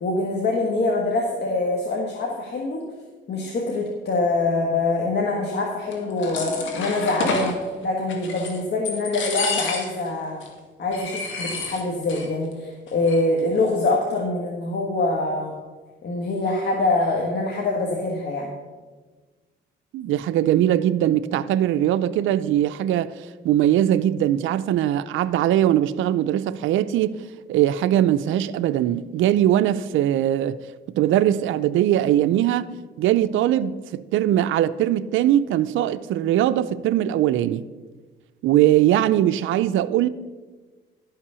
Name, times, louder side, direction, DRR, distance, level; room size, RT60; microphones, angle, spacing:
voice 1, 0.0-2.8 3.3-10.4 10.8-15.5 16.0-18.5, left 2 dB, 60° left, 1.5 m, -24 dB
sound 1, 5.9-7.5 8.1-8.6 8.8-10.1 10.4-10.5 10.9-12.3 12.5-12.6 12.9-13.4, left 4 dB, 75° left, 2.1 m, -30 dB
voice 2, 19.9-27.2 27.5-30.6 30.9-32.7 33.0-37.7 38.4-40.1, right 12 dB, 80° right, 0.4 m, -21 dB
11.5 x 5.8 x 6.8 m
cardioid pair, 90°, 20 cm